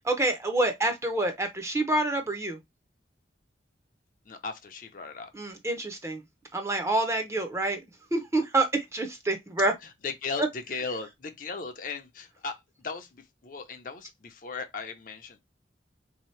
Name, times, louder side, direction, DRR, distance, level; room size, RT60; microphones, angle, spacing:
voice 1, 0.1-2.6 5.3-6.2 6.5-7.8 8.1-9.7 10.4-10.5, right 2 dB, 15° right, 0.6 m, -27 dB
voice 2, 4.3-5.3 10.0-12.6 12.8-13.1 13.4-15.4, left 4 dB, 45° left, 0.6 m, -36 dB
3.8 x 2.8 x 3.1 m
head